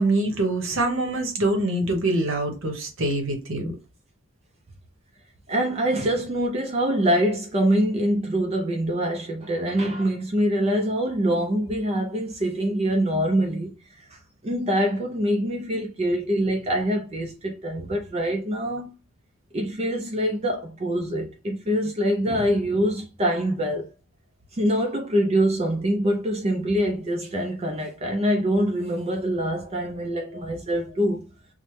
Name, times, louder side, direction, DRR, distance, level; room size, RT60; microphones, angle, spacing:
voice 1, 0.0-3.7, right 2 dB, 60° right, 0.8 m, -24 dB
voice 2, 5.5-13.7 14.1-14.2 14.4-18.9 19.5-23.9 24.5-31.2, equal, 30° right, 0.4 m, -24 dB
3.1 x 2.0 x 3.1 m
head